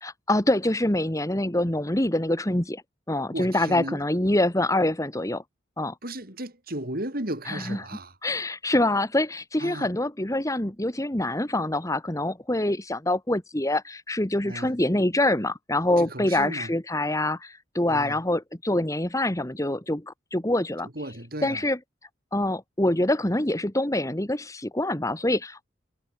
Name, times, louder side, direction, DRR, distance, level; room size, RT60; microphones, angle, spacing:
voice 1, 0.0-2.8 3.1-5.4 5.8-5.9 7.5-7.8 8.2-20.9 21.4-21.8 22.3-25.8, left 1 dB, 15° left, 1.8 m, -25 dB
voice 2, 3.3-4.0 6.0-8.1 9.6-9.9 14.4-14.7 16.0-16.7 17.9-18.2 21.0-21.6, right 1 dB, 50° right, 7.1 m, -35 dB
head